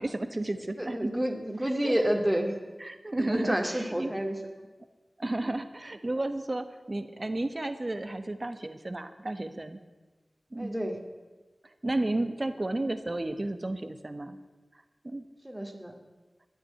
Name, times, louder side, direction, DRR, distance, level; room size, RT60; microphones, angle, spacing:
voice 1, 0.0-1.1 1.8-1.9 2.8-4.1 5.2-9.8 10.5-10.7 11.8-14.4 15.0-15.2, right 2 dB, 40° right, 10 dB, 1.2 m, -32 dB
voice 2, 0.8-2.6 3.2-4.7 10.6-11.0 12.7-12.9 15.4-15.9, equal, 10° right, 4 dB, 2.6 m, -29 dB
13.5 x 9.7 x 9.3 m, 1.2 s
cardioid pair, 45°, 0 cm